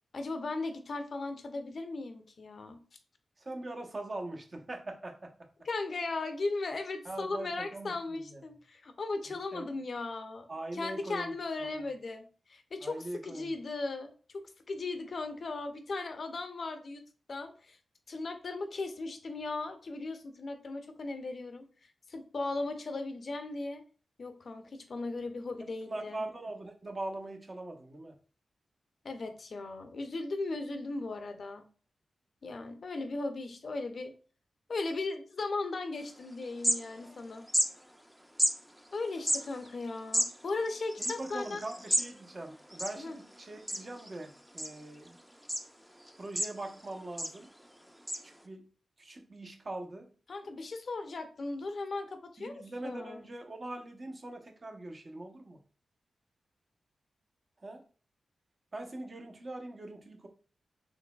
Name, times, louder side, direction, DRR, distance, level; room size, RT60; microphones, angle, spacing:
voice 1, 0.1-2.8 5.6-10.4 10.7-14.1 14.7-17.0 17.3-17.8 18.1-21.7 22.1-23.8 24.2-26.2 29.0-31.7 32.4-34.1 34.7-37.5 38.9-41.6 43.0-43.2 50.3-53.3, left 3 dB, 60° left, 7 dB, 0.5 m, -37 dB
voice 2, 3.4-5.3 7.0-8.4 9.3-9.7 10.5-11.3 11.6-11.8 12.8-13.5 25.8-28.2 41.0-45.2 46.2-47.5 48.2-48.7 49.0-50.1 52.4-55.6 57.6-57.8 58.7-60.3, right 2 dB, 45° right, 4 dB, 0.7 m, -42 dB
sound 1, 36.1-36.2 36.4-37.2 37.5-37.7 38.4-38.5 39.1-42.1 42.4-42.5 42.7-43.3 43.7-44.1 44.6-45.1 45.5-45.6 46.1-46.8 47.2-47.4 48.1-48.2, equal, 5° right, 0.4 m, -31 dB
3.9 x 3.0 x 2.2 m, 0.39 s
cardioid pair, 50°, 0 cm